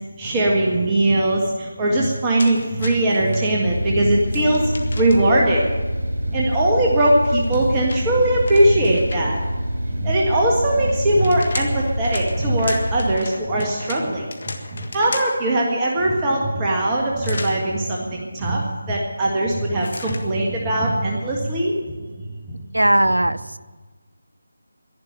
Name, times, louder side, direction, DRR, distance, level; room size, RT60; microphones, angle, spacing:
voice 1, 0.2-5.7 6.3-9.4 9.9-14.3 14.7-21.8 22.5-22.6, right 1 dB, 15° right, -3 dB, 1.7 m, -20 dB
sound 1, 2.4-3.4 4.3-5.4 7.2-9.5 10.9-15.5 17.2-17.6 19.8-20.3, left 3 dB, 55° left, 1.7 m, -35 dB
sound 2, 3.6-13.2, equal, 70° right, 6.7 m, -26 dB
voice 2, 22.7-23.6, right 1 dB, 85° right, 13 dB, 0.6 m, -18 dB
11.5 x 11.5 x 9.0 m, 1.3 s
figure-of-eight pair, 160°, 0 cm